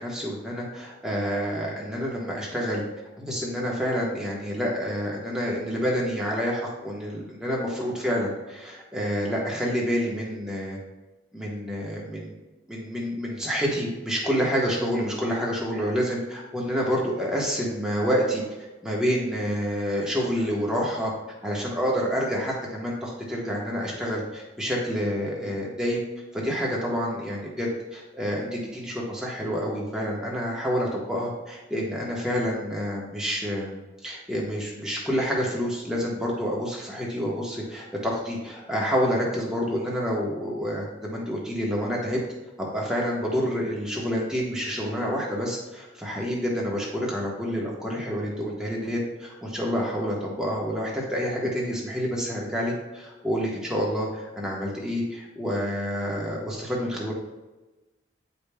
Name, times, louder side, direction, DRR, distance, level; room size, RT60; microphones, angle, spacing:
voice 1, 0.0-2.8 3.2-10.8 11.3-12.3 12.7-18.4 18.8-21.1 21.4-26.0 26.3-42.2 42.6-57.1, equal, 5° right, -4 dB, 1.1 m, -28 dB
8.5 x 5.1 x 2.3 m, 1.1 s
head